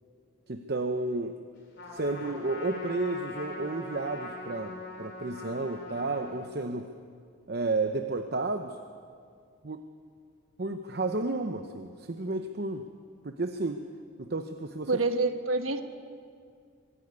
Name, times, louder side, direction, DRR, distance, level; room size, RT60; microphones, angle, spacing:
voice 1, 0.5-1.4 1.9-6.9 7.5-8.8 9.6-9.9 10.6-12.9 13.2-13.8 14.2-14.9, right 2 dB, 50° right, 7 dB, 0.8 m, -32 dB
Trumpet, 1.8-6.4, left 2 dB, 55° left, 3.6 m, -42 dB
voice 2, 14.9-15.8, right 3 dB, 85° right, 8 dB, 1.3 m, -27 dB
24.5 x 12.0 x 9.7 m, 2.2 s
head